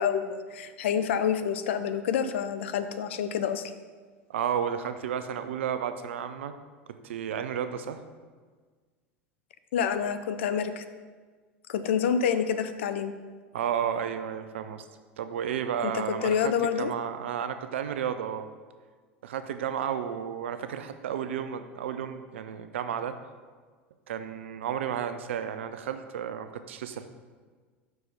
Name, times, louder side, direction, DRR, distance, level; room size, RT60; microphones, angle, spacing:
voice 1, 0.0-3.7 9.7-10.8 11.7-13.1 15.8-16.9, left 7 dB, 70° left, 10 dB, 0.5 m, -28 dB
voice 2, 4.3-6.5 6.9-8.0 13.5-14.9 15.2-18.5 19.2-23.2 24.1-27.1, right 8 dB, 75° right, 9 dB, 0.5 m, -32 dB
5.8 x 4.7 x 5.2 m, 1.5 s
hypercardioid pair, 80°, 7 cm